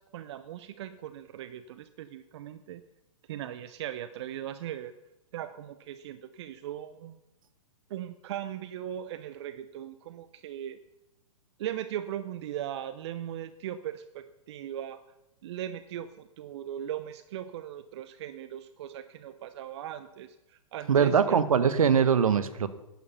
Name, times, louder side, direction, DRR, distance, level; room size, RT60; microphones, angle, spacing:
voice 1, 0.0-2.8 3.3-4.9 5.3-7.2 7.9-10.8 11.6-15.0 15.4-21.4, right 11 dB, 50° right, 11 dB, 0.7 m, -39 dB
voice 2, 20.9-22.7, right 7 dB, 75° right, 12 dB, 1.2 m, -22 dB
11.5 x 9.6 x 5.7 m, 0.93 s
hypercardioid pair, 120°, 18 cm